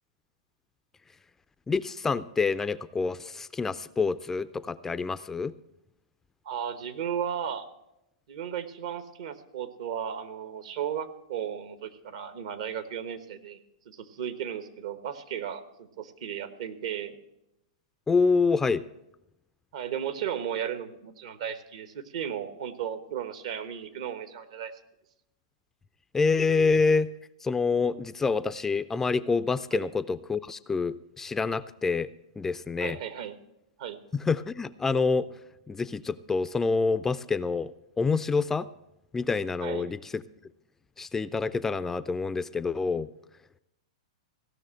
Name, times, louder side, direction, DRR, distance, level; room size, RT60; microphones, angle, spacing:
voice 1, 1.7-5.5 18.1-18.8 26.1-27.1 27.4-32.1 32.4-33.0 34.1-35.3 35.7-37.7 38.0-38.7 39.1-40.2 41.0-43.1, left 4 dB, 10° left, 14 dB, 0.3 m, -27 dB
voice 2, 6.4-7.6 8.3-13.6 13.8-17.2 19.7-24.7 29.7-29.9 32.8-33.3 33.8-34.0 39.6-39.8, right 9 dB, 65° right, 11 dB, 1.2 m, -35 dB
15.5 x 6.1 x 7.6 m, 0.87 s
hypercardioid pair, 120°, 3 cm